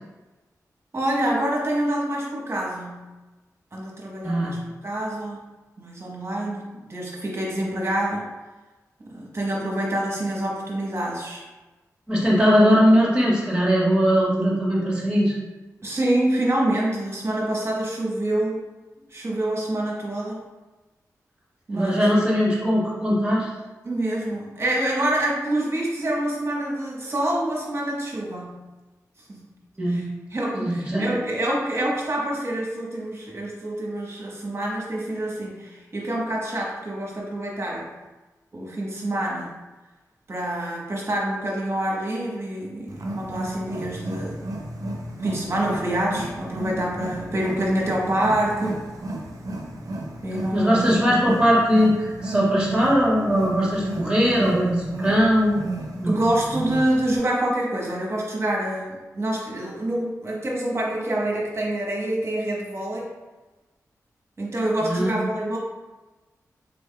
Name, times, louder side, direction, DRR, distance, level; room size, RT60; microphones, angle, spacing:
voice 1, 0.9-3.1 3.7-4.6 4.8-5.4 5.8-8.3 9.1-11.4 12.1-12.3 15.8-18.6 19.1-20.4 21.7-22.1 23.8-28.6 29.3-29.5 29.9-30.0 30.3-37.9 38.5-39.5 40.3-44.4 45.2-48.8 50.2-50.8 56.1-63.1 64.4-65.6, right 1 dB, 45° right, -3 dB, 1.0 m, -26 dB
voice 2, 12.1-15.3 21.7-23.5 29.8-30.2 30.5-31.1 50.5-55.6 56.0-56.2 64.8-65.1, equal, 15° right, -6 dB, 1.5 m, -20 dB
Wild animals, 42.9-57.2, right 1 dB, 65° right, 0.6 m, -33 dB
3.8 x 3.4 x 2.3 m, 1.2 s
cardioid pair, 50°, 7 cm